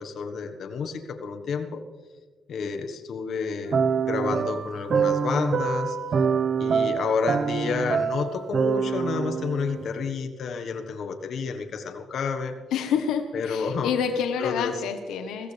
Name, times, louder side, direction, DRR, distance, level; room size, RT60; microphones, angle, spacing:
voice 1, 0.0-1.8 2.5-6.0 6.6-12.8 13.3-13.9 14.4-14.8, left 5 dB, 65° left, 6 dB, 1.4 m, -30 dB
sound 1, 3.7-10.1, right 6 dB, 55° right, 1.0 m, -25 dB
voice 2, 12.7-15.5, left 7 dB, 90° left, 6 dB, 1.2 m, -28 dB
22.0 x 15.5 x 3.4 m, 1.4 s
cardioid pair, 90°, 0 cm